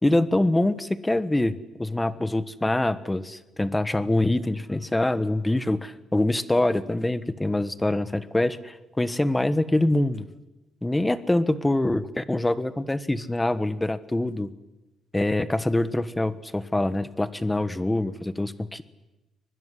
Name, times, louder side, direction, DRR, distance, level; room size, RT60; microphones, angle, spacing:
voice 1, 0.0-10.3 10.8-14.5 15.1-18.8, left 1 dB, 10° left, 13 dB, 1.3 m, -25 dB
24.0 x 20.5 x 9.9 m, 1.0 s
cardioid pair, 120°, 0 cm